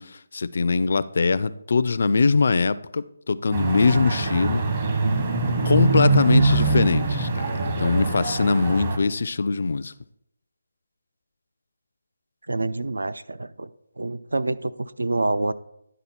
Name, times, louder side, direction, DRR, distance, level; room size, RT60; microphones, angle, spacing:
voice 1, 0.0-4.6 5.6-9.9, left 4 dB, 55° left, 0.3 m, -22 dB
sound 1, 3.5-9.0, right 3 dB, 35° right, 1.0 m, -23 dB
voice 2, 12.5-13.7 14.0-15.5, right 2 dB, 75° right, 0.4 m, -27 dB
10.5 x 3.9 x 4.3 m
figure-of-eight pair, 155°, 0 cm